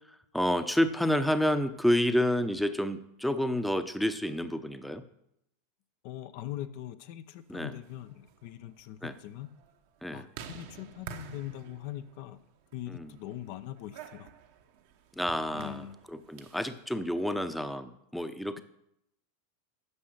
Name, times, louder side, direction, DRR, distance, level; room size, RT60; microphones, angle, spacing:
voice 1, 0.3-5.0 7.5-7.7 9.0-9.1 10.0-10.3 12.9-13.1 15.2-18.6, equal, ahead, 10 dB, 0.7 m, -29 dB
voice 2, 6.0-9.5 10.1-12.4 12.7-14.3 15.5-16.0, left 13 dB, 60° left, 11 dB, 0.6 m, -41 dB
sound 1, 7.7-16.8, right 7 dB, 65° right, 1.0 m, -50 dB
9.7 x 5.9 x 6.5 m, 0.78 s
hypercardioid pair, 100°, 0 cm